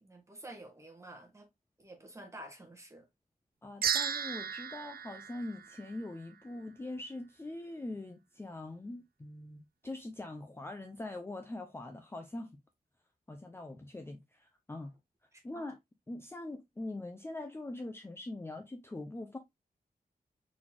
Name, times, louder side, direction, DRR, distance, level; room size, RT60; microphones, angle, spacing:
voice 1, 0.0-1.5 1.8-3.0 15.5-15.6, right 1 dB, 20° right, 1.4 m, -49 dB
voice 2, 3.6-12.5 13.3-14.9 15.4-15.8 16.1-19.4, left 2 dB, 15° left, 0.5 m, -43 dB
sound 1, 3.8-6.3, right 8 dB, 70° right, 0.5 m, -35 dB
4.1 x 4.0 x 2.9 m
wide cardioid pair, 150°, 16 cm